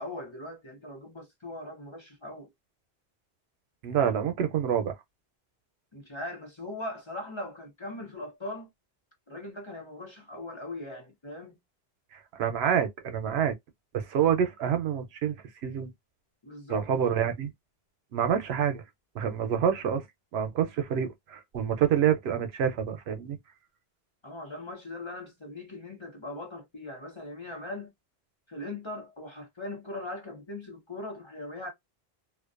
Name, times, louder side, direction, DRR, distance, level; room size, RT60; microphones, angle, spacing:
voice 1, 0.0-2.5 5.9-8.7 9.3-11.6 16.4-16.9 24.2-27.9 28.5-31.7, left 2 dB, 30° left, 0.7 m, -40 dB
voice 2, 3.8-4.9 12.1-13.5 13.9-15.9 16.7-17.5 18.1-18.8 19.1-20.0 20.3-23.4, right 8 dB, 80° right, 0.8 m, -27 dB
2.4 x 2.2 x 2.3 m
omnidirectional pair, 1.1 m